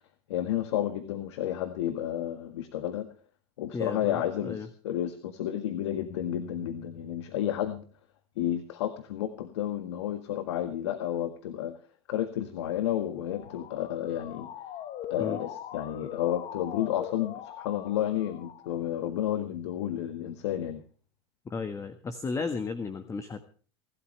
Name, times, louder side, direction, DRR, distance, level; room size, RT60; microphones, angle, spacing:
voice 1, 0.3-3.1 3.6-7.8 8.4-11.7 12.1-14.5 15.1-20.8, left 11 dB, 85° left, 9 dB, 1.7 m, -31 dB
voice 2, 3.7-4.7 15.2-15.4 21.4-23.5, left 4 dB, 20° left, 9 dB, 1.6 m, -34 dB
Motor vehicle (road) / Siren, 13.1-18.9, left 10 dB, 45° left, 1.4 m, -42 dB
26.0 x 13.0 x 3.3 m, 0.41 s
supercardioid pair, 110°, 14 cm